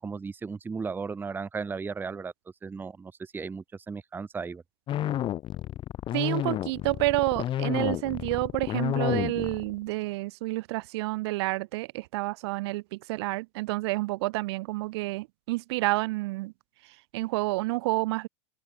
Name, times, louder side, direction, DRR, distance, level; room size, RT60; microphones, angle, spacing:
voice 1, 0.0-2.3 2.6-4.6, right 5 dB, 15° right, 0.7 m, -35 dB
sound 1, 4.9-9.8, left 12 dB, 35° left, 1.0 m, -30 dB
voice 2, 6.1-16.5 17.1-18.3, right 21 dB, 65° right, 1.0 m, -29 dB
hypercardioid pair, 100°, 15 cm